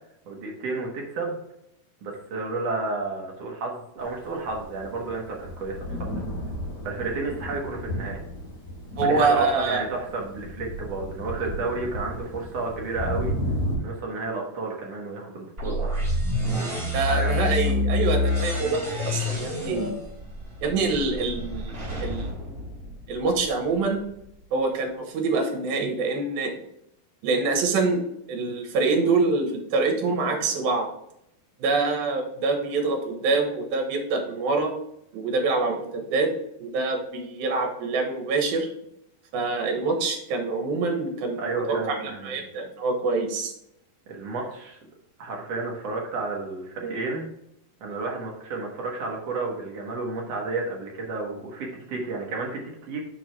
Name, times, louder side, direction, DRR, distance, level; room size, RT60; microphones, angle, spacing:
voice 1, 0.3-1.4 2.0-6.2 6.8-8.2 9.0-13.3 13.8-15.9 17.1-17.7 41.4-42.4 44.1-44.8 45.2-47.3 47.8-53.0, right 3 dB, 60° right, -1 dB, 1.8 m, -31 dB
Thunder, 4.2-13.8, equal, 40° left, 2.9 m, -33 dB
voice 2, 9.0-9.9 16.9-20.0 20.6-21.7 22.0-22.3 23.1-24.0 24.5-26.5 27.2-28.0 28.3-30.9 31.6-34.7 35.1-36.3 36.6-38.7 39.3-43.5, right 3 dB, 80° right, 4 dB, 2.9 m, -25 dB
sound 1, 15.6-23.5, left 2 dB, 20° right, 2.4 m, -27 dB
6.1 x 4.7 x 4.5 m, 0.78 s
omnidirectional pair, 4.2 m